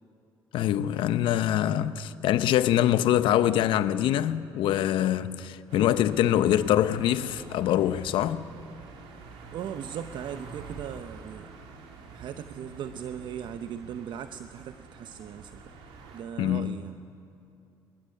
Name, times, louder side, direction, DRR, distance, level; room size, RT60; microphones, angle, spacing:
voice 1, 0.5-8.5 16.4-16.8, left 11 dB, 75° left, 0.8 m, -24 dB
sound 1, 5.7-16.2, right 4 dB, 85° right, 2.6 m, -47 dB
voice 2, 9.5-11.5 12.1-15.7 16.1-17.0, right 9 dB, 65° right, 0.7 m, -38 dB
23.5 x 13.0 x 9.8 m
cardioid pair, 90°, 9 cm